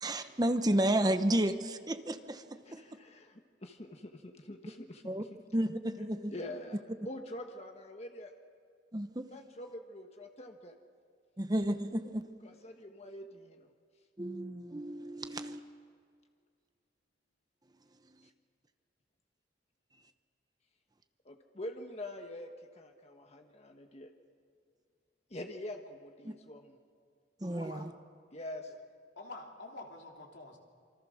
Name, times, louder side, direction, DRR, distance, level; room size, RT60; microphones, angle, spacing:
voice 1, 0.0-2.8 5.0-5.2 5.5-6.3 8.9-9.3 11.4-12.3 14.2-15.6 26.2-26.3 27.4-27.9, right 1 dB, 20° right, 9 dB, 0.9 m, -32 dB
voice 2, 2.6-5.3 6.3-8.3 9.3-10.8 12.4-13.7 15.1-15.5 21.2-24.1 25.3-26.8 27.5-27.7 28.3-28.7, left 1 dB, 35° left, 4 dB, 1.4 m, -45 dB
voice 3, 29.2-30.6, left 2 dB, 80° left, 1 dB, 3.5 m, -47 dB
27.5 x 25.0 x 6.5 m, 2.2 s
head